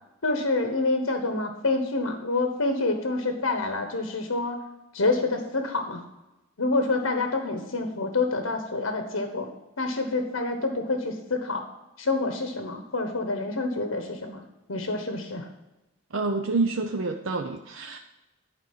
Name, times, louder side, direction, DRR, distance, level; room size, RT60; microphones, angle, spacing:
voice 1, 0.2-4.6 4.9-6.0 6.6-9.5 9.8-11.6 12.0-14.4 14.7-15.5, left 3 dB, 80° left, 5 dB, 1.2 m, -27 dB
voice 2, 16.1-18.0, right 3 dB, 65° right, 4 dB, 0.7 m, -27 dB
11.0 x 5.2 x 7.4 m, 0.99 s
head